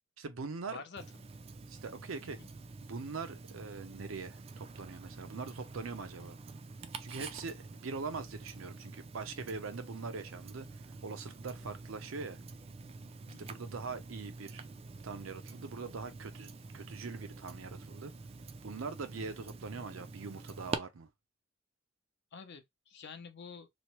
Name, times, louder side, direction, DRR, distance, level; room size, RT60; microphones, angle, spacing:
voice 1, 0.2-0.8 1.7-2.4 2.8-6.4 7.0-10.7 11.0-12.4 13.4-14.6 15.0-18.1 18.6-21.1, right 4 dB, 85° right, 0.6 m, -42 dB
voice 2, 0.7-1.0 2.4-2.5 11.6-11.7 13.3-13.6 22.3-23.7, left 5 dB, 60° left, 0.6 m, -48 dB
Tick-tock, 1.0-20.8, right 4 dB, 30° right, 0.3 m, -47 dB
3.0 x 2.0 x 2.9 m
head